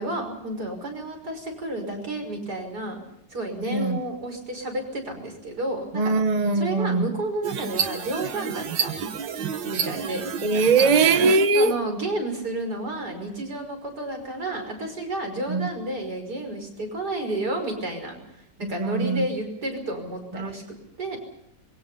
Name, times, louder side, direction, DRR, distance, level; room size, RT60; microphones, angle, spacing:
voice 1, 0.0-3.0 3.3-6.1 6.5-9.0 9.6-10.2 10.5-10.9 11.5-18.2 18.6-20.6 21.0-21.2, right 2 dB, 60° right, 6.1 m, -31 dB
voice 2, 3.7-4.0 5.9-7.1 10.4-11.7 15.5-15.7 18.6-19.3 20.3-20.5, right 4 dB, 30° right, 0.8 m, -21 dB
sound 1, 7.4-11.5, right 6 dB, 80° right, 2.0 m, -29 dB
26.0 x 23.0 x 5.6 m
omnidirectional pair, 2.0 m